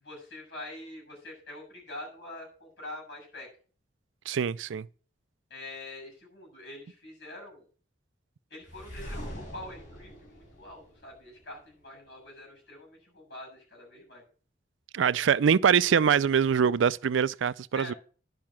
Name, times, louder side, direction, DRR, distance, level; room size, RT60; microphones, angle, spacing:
voice 1, 0.0-3.5 5.5-7.7 8.5-14.2 17.7-18.0, left 1 dB, 60° left, 7.1 m, -45 dB
voice 2, 4.3-4.9 14.9-17.9, right 7 dB, 85° right, 0.4 m, -24 dB
sound 1, 8.6-11.6, equal, 40° left, 4.2 m, -43 dB
10.5 x 5.8 x 7.3 m
head